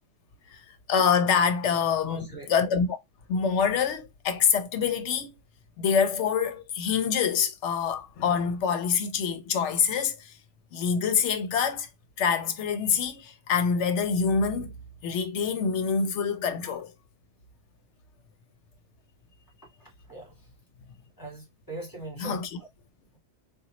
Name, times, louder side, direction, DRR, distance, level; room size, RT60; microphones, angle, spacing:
voice 1, 0.9-3.0 3.3-5.3 5.8-10.3 10.7-11.9 12.2-14.7 15.0-16.9 22.2-22.5, left 6 dB, 80° left, 0.9 m, -25 dB
voice 2, 2.0-2.5 16.6-16.8 19.8-20.3 21.2-22.7, right 1 dB, 20° left, 1.6 m, -41 dB
3.8 x 2.3 x 3.0 m
omnidirectional pair, 1.2 m